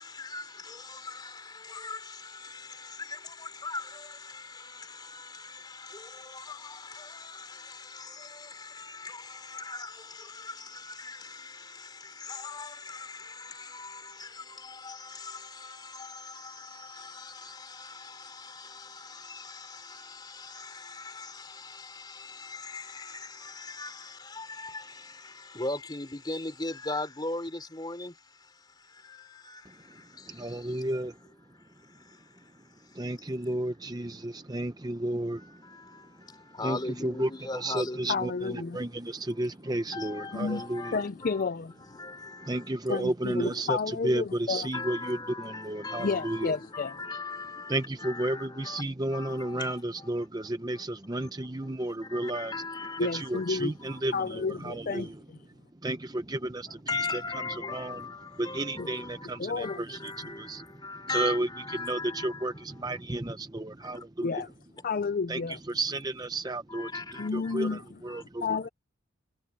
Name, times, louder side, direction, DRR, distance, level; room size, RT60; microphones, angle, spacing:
voice 1, 0.0-31.0 31.5-33.1 35.4-38.6 39.7-41.5 41.9-42.7 44.7-48.8 49.1-50.1 50.7-50.8 51.2-51.3 51.8-53.5 53.9-54.0 56.7-59.3 59.6-62.5 63.8-64.0 66.7-67.7 68.1-68.2, left 3 dB, 20° left, 3.2 m, -40 dB
voice 2, 30.3-31.2 32.9-35.7 36.2-36.3 36.6-41.0 42.4-46.6 47.7-52.6 53.0-55.2 55.8-57.1 57.5-58.0 58.4-60.6 61.0-64.3 65.3-68.6, right 1 dB, 20° right, 0.7 m, -33 dB
voice 3, 38.1-38.8 40.3-41.7 42.9-44.7 46.0-47.0 53.0-53.7 54.1-55.4 58.8-58.9 59.4-59.8 64.2-64.5 64.8-65.6 67.2-67.8 68.4-68.7, left 4 dB, 45° left, 0.4 m, -31 dB
head